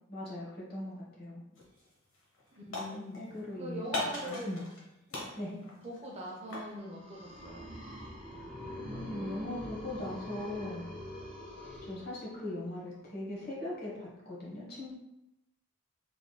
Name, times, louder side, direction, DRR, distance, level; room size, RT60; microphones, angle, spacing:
voice 1, 0.1-1.4 2.9-4.6 5.3-5.5 8.4-8.5 8.9-10.9 11.6-14.9, left 1 dB, 50° left, -5 dB, 1.3 m, -40 dB
sound 1, 1.6-1.9 2.1-3.4 3.9-4.8 5.1-6.8, left 2 dB, 70° left, 0.9 m, -39 dB
voice 2, 2.5-3.2 3.6-4.6 5.5-7.7, equal, 30° right, -2 dB, 0.7 m, -42 dB
sound 2, 6.7-12.6, left 1 dB, 5° left, 1.5 m, -44 dB
3.6 x 3.4 x 2.3 m, 0.87 s
head